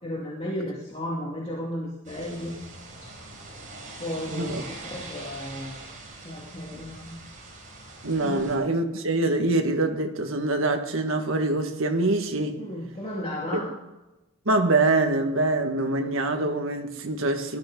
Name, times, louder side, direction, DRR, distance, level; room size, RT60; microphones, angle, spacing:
voice 1, 0.0-2.5 4.0-5.9 6.2-7.2 8.2-8.4 12.6-13.7, left 1 dB, 30° left, 2.7 m, -34 dB
sound 1, 2.0-8.6, right 2 dB, 40° right, 4.4 m, -43 dB
voice 2, 4.3-4.6 8.0-12.6 14.4-17.6, right 2 dB, 65° right, 1.7 m, -24 dB
19.0 x 13.0 x 3.8 m
head